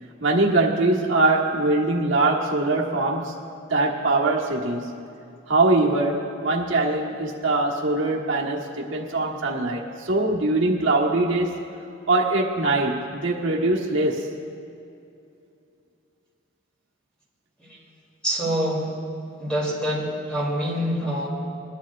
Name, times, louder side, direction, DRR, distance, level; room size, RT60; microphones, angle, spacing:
voice 1, 0.2-3.4 3.7-5.0 5.5-11.6 12.1-14.3, right 2 dB, 75° right, -2 dB, 1.3 m, -22 dB
voice 2, 17.6-17.9 18.2-18.9 19.4-21.3, equal, 5° left, -5 dB, 2.8 m, -26 dB
21.0 x 12.0 x 2.4 m, 2.6 s
head